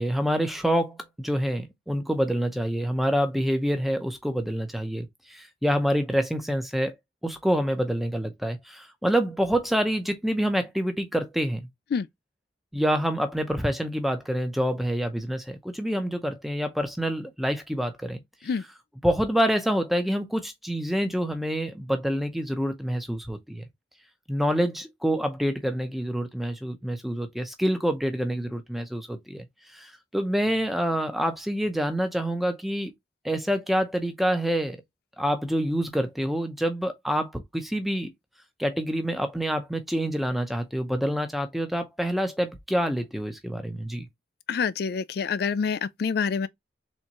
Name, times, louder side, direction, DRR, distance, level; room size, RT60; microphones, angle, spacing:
voice 1, 0.0-6.9 7.2-11.7 12.7-18.2 19.0-23.7 24.3-29.5 29.7-32.9 33.2-34.8 35.2-38.1 38.6-44.1, equal, ahead, 0.7 m, -27 dB
voice 2, 44.5-46.5, left 6 dB, 55° left, 0.3 m, -27 dB
4.3 x 3.6 x 2.9 m
head